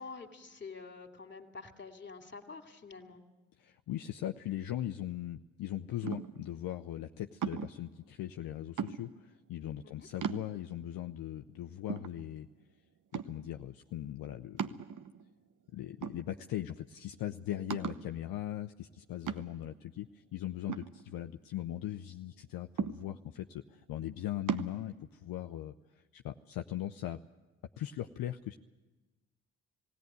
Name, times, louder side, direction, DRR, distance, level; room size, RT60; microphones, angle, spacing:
voice 1, 0.0-3.2 9.8-10.1, left 4 dB, 25° left, 6 dB, 2.6 m, -47 dB
voice 2, 3.6-12.5 13.1-14.7 15.7-25.7 26.1-27.2 27.8-28.6, left 12 dB, 60° left, 7 dB, 0.7 m, -39 dB
sound 1, 6.0-6.5 7.4-7.9 8.8-9.3 9.8-9.9 10.2-10.9 11.4-11.5 11.9-12.6 13.1-13.5 14.6-15.3 16.0-16.7 17.0-17.1 17.7-18.1 19.3-19.8 20.7-21.6 22.8-23.4 24.5-24.8, right 8 dB, 50° right, 1.1 m, -37 dB
19.5 x 16.5 x 9.4 m, 1.2 s
hypercardioid pair, 45°, 39 cm